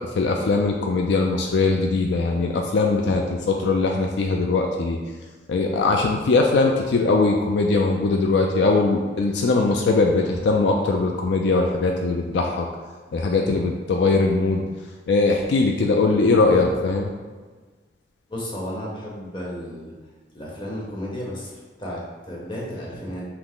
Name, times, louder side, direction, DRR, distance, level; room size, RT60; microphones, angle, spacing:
voice 1, 0.1-5.0 5.5-12.7 13.1-14.7 15.1-17.1, left 3 dB, 70° left, 1 dB, 0.4 m, -21 dB
voice 2, 16.3-16.8 18.3-19.9 20.3-23.3, equal, 25° left, -5 dB, 1.0 m, -33 dB
5.7 x 2.0 x 3.6 m, 1.4 s
head